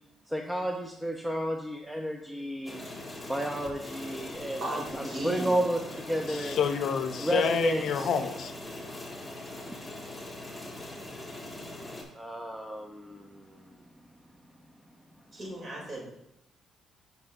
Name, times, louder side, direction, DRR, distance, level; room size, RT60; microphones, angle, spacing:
voice 1, 0.3-2.8 3.3-5.8 6.1-6.6 7.2-8.1 12.2-13.8, right 1 dB, 10° right, 2 dB, 0.6 m, -32 dB
sound 1, 2.7-12.0, left 1 dB, 10° left, 2.0 m, -41 dB
voice 2, 4.6-5.6 15.3-16.0, right 1 dB, 40° right, -3 dB, 2.8 m, -36 dB
voice 3, 6.3-8.5, left 7 dB, 70° left, 8 dB, 0.5 m, -28 dB
12.0 x 5.4 x 2.5 m, 0.83 s
cardioid pair, 90°, 0 cm